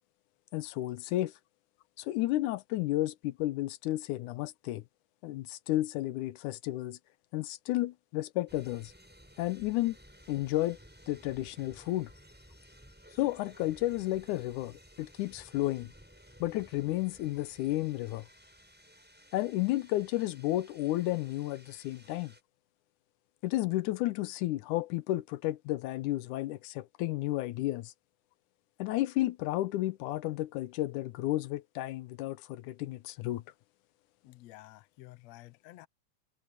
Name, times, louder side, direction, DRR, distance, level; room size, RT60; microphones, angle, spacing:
voice 1, 0.5-1.3 2.0-4.8 5.2-7.0 7.3-8.9 9.4-10.0 10.3-10.8 11.1-12.1 13.1-15.9 16.4-18.3 19.3-22.3 23.4-27.9 28.8-33.4, left 16 dB, 90° left, 2.2 m, -32 dB
sound 1, 8.5-22.4, equal, 5° right, 6.9 m, -57 dB
voice 2, 34.2-35.9, left 17 dB, 70° left, 1.9 m, -52 dB
omnidirectional pair, 3.5 m